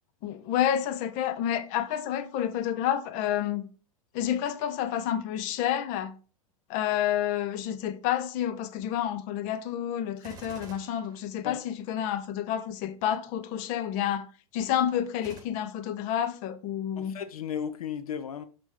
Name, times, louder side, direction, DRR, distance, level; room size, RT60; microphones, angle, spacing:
voice 1, 0.2-3.7 4.1-6.2 6.7-14.3 14.5-17.2, left 10 dB, 45° left, 0.8 m, -29 dB
Gunshot gunfire, 10.2-11.9 15.2-15.4, right 5 dB, 20° right, 2.0 m, -48 dB
voice 2, 17.0-18.4, left 8 dB, 75° left, 0.7 m, -35 dB
6.2 x 6.2 x 3.6 m
hypercardioid pair, 105°, 19 cm